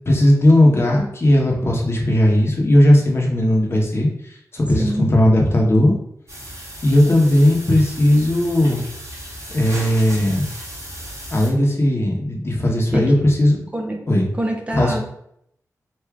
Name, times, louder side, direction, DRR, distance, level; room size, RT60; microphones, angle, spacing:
voice 1, 0.1-5.9 6.8-8.8 9.5-10.5 11.3-13.6 14.1-14.3 14.7-14.9, left 1 dB, 40° left, -1 dB, 1.0 m, -16 dB
voice 2, 4.8-5.1 12.9-13.1 13.7-14.0 14.3-15.0, right 1 dB, 20° right, 1 dB, 0.6 m, -24 dB
sound 1, 6.3-11.5, equal, 45° right, 1.7 m, -35 dB
3.5 x 2.6 x 4.7 m, 0.73 s
wide cardioid pair, 130°, 6 cm